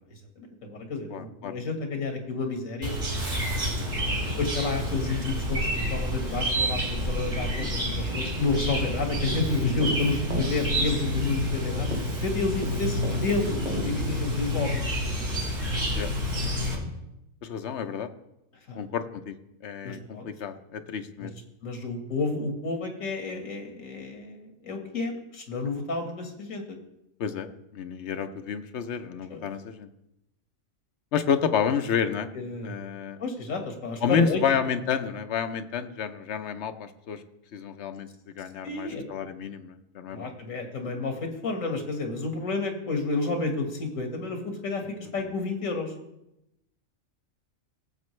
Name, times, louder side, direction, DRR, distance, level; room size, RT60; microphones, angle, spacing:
voice 1, 0.4-3.0 4.4-14.9 18.7-18.8 19.8-20.3 21.2-21.3 21.6-26.8 29.3-29.4 32.3-32.8 33.2-34.4 38.6-39.1 40.1-45.9, left 3 dB, 75° left, 4 dB, 2.0 m, -30 dB
voice 2, 1.1-1.5 3.7-4.0 7.4-7.7 15.9-16.1 17.4-18.1 18.7-19.3 19.6-21.3 27.2-29.9 31.1-32.3 32.6-33.2 34.0-37.2 37.5-38.1 38.4-40.3 45.0-45.1, left 7 dB, 60° left, 8 dB, 0.9 m, -30 dB
Chirp tweet, 2.8-16.7, equal, 75° right, 3.3 m, -29 dB
Keyboard (musical), 9.3-11.6 11.9-14.7, right 1 dB, 30° right, 1.4 m, -36 dB
17.5 x 7.4 x 3.2 m, 0.86 s
omnidirectional pair, 1.4 m